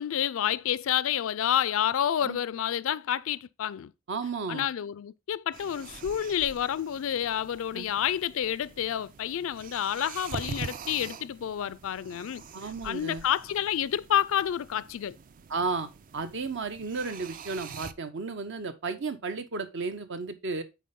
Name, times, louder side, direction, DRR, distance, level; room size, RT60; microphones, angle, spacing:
voice 1, 0.0-3.9 4.5-15.2, left 10 dB, 65° left, 0.3 m, -29 dB
voice 2, 4.1-4.7 7.7-7.9 12.5-13.2 15.5-20.6, right 4 dB, 60° right, 0.9 m, -33 dB
sound 1, 5.5-17.9, right 5 dB, 40° right, 0.4 m, -44 dB
8.4 x 4.2 x 3.6 m
head